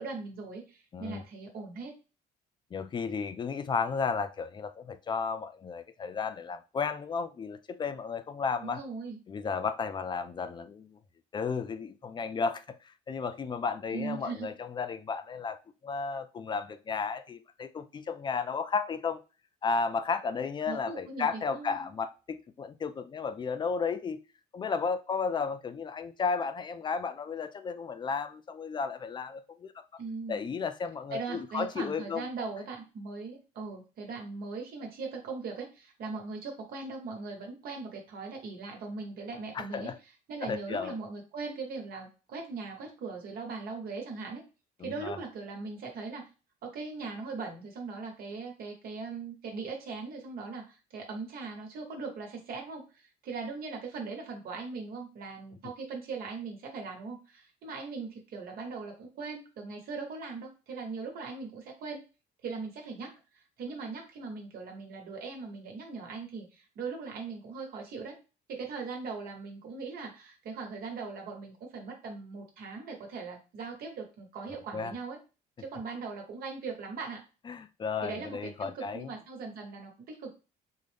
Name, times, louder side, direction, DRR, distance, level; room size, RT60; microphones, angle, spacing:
voice 1, 0.0-2.0 8.6-9.2 13.9-14.5 20.7-21.9 30.0-30.5 31.1-39.9 40.3-44.4 44.8-46.2 46.6-62.0 62.4-68.2 68.5-75.2 75.6-77.2 78.0-80.3, right 4 dB, 65° right, 1.1 m, -40 dB
voice 2, 2.7-8.8 9.3-11.0 11.3-12.8 13.1-19.2 19.6-24.2 24.5-29.7 30.3-32.3 39.5-40.0 40.4-41.0 44.8-45.2 74.7-74.9 77.5-79.1, left 5 dB, 25° left, 0.3 m, -33 dB
3.8 x 2.1 x 3.3 m
cardioid pair, 110°, 17 cm